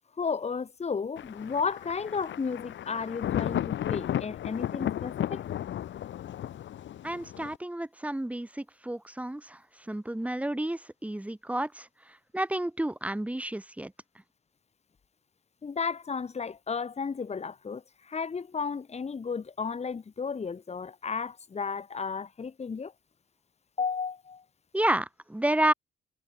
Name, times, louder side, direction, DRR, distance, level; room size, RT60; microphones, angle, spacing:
voice 1, 0.2-5.4 15.6-22.9 23.8-24.4, left 5 dB, 35° left, 2.0 m, -33 dB
Thunder, 1.2-7.6, left 11 dB, 70° left, 2.1 m, -34 dB
voice 2, 7.0-13.9 24.7-25.7, right 1 dB, 5° right, 1.6 m, -31 dB
cardioid pair, 90°, 20 cm